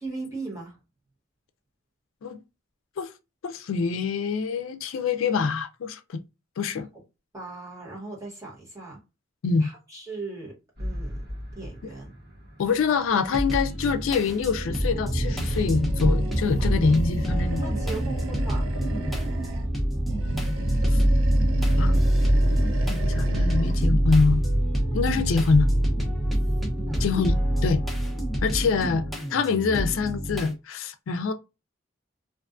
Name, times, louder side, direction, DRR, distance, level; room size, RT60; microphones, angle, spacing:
voice 1, 0.0-0.8 6.9-7.0 7.3-9.0 9.6-10.5 10.8-11.2 11.5-12.1 16.6-16.7 17.6-18.7 26.9-27.1, right 3 dB, 15° right, 1.2 m, -38 dB
voice 2, 3.4-6.2 6.6-6.9 9.4-9.7 12.6-17.6 20.9-21.0 21.8-22.0 23.1-24.4 24.9-25.7 27.0-27.8 28.4-29.0 29.3-31.3, left 5 dB, 80° left, 0.4 m, -25 dB
sound 1, 10.8-12.2 13.6-13.7 13.9-28.4, right 1 dB, 55° right, 0.8 m, -25 dB
sound 2, 13.3-30.5, equal, ahead, 0.5 m, -31 dB
Animal, 15.2-19.7 20.0-23.9, right 1 dB, 85° right, 0.4 m, -35 dB
2.5 x 2.3 x 2.4 m
head